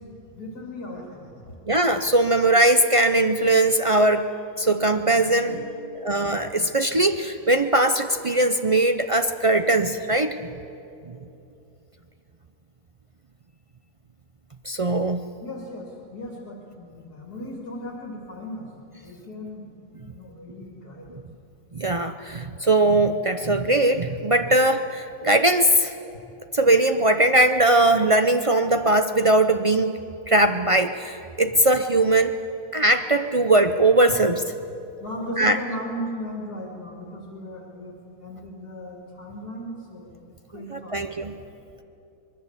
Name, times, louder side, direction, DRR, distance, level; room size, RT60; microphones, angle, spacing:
voice 1, 0.4-1.5 5.3-6.1 15.4-18.7 18.9-19.7 20.1-21.2 35.0-41.2, equal, 80° left, 0 dB, 3.4 m, -37 dB
voice 2, 1.7-4.3 4.6-5.6 6.0-10.4 14.6-15.2 21.7-25.9 26.5-30.0 30.3-32.4 32.7-34.4 35.4-35.6 40.7-41.3, right 2 dB, 55° right, 8 dB, 0.3 m, -20 dB
25.0 x 20.5 x 8.2 m, 2.7 s
omnidirectional pair, 1.6 m